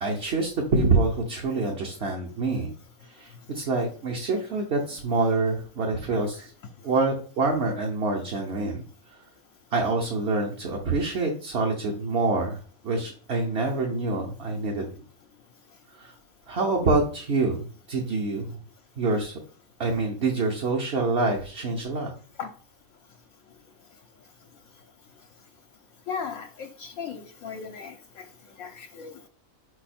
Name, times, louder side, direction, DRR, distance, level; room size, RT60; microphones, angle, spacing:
voice 1, 0.0-2.7 3.0-6.5 6.8-8.9 9.1-9.2 9.7-12.6 12.8-15.0 15.9-16.1 16.5-18.6 19.0-19.4 19.8-22.1, right 3 dB, 50° right, 1 dB, 1.2 m, -26 dB
voice 2, 26.1-27.9 28.6-29.1, left 6 dB, 70° left, 4 dB, 1.1 m, -36 dB
5.4 x 4.5 x 4.3 m, 0.41 s
omnidirectional pair, 1.5 m